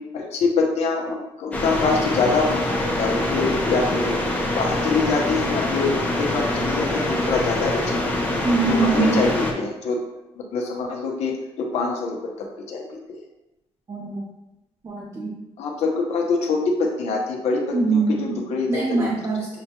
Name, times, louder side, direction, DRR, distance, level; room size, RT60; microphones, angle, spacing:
voice 1, 0.1-4.2 4.6-8.0 8.7-10.0 10.4-12.3 12.7-13.2 15.6-19.0, left 4 dB, 70° left, 0 dB, 0.9 m, -25 dB
sound 1, 1.5-9.5, left 1 dB, 15° left, 0.7 m, -24 dB
voice 2, 8.4-9.2 13.9-14.2 14.8-15.3 17.7-18.4 18.7-19.5, right 4 dB, 30° right, -4 dB, 0.6 m, -22 dB
6.8 x 2.3 x 2.9 m, 0.94 s
cardioid pair, 160°, 11 cm